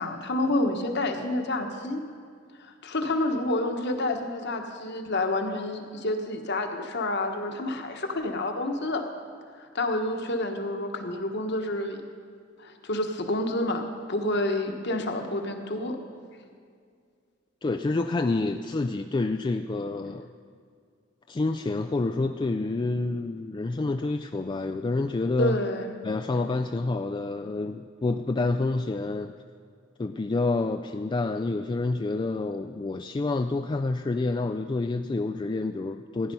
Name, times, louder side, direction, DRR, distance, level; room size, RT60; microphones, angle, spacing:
voice 1, 0.0-2.0 2.6-9.0 9.6-12.0 12.6-13.8 14.1-16.0 25.4-25.9, left 1 dB, 60° left, 4 dB, 1.3 m, -29 dB
voice 2, 17.6-20.3 21.3-25.6 26.0-29.3 30.0-36.3, left 3 dB, 25° left, 6 dB, 0.3 m, -28 dB
15.0 x 10.5 x 5.4 m, 2.2 s
head